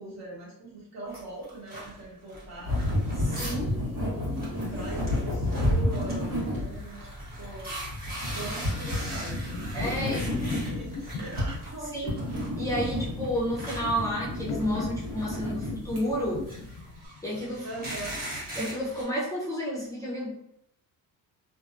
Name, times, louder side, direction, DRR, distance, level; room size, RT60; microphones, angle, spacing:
voice 1, 0.0-2.8 3.7-7.1 7.4-7.7 8.3-12.3 17.6-18.2, right 2 dB, 50° right, -4 dB, 1.1 m, -41 dB
sound 1, 1.1-3.7 4.0-4.1 4.3-11.7 12.1-19.0, right 1 dB, 25° right, 1.1 m, -41 dB
sound 2, 2.7-16.9, left 1 dB, 85° right, 1.3 m, -31 dB
voice 2, 3.2-3.7 9.7-10.4 11.9-12.2 12.6-16.4 17.2-17.7 18.6-20.3, equal, 10° left, -6 dB, 0.5 m, -31 dB
sound 3, 8.6-18.2, left 4 dB, 90° left, 0.5 m, -39 dB
2.6 x 2.2 x 2.5 m, 0.74 s
cardioid pair, 130°, 35 cm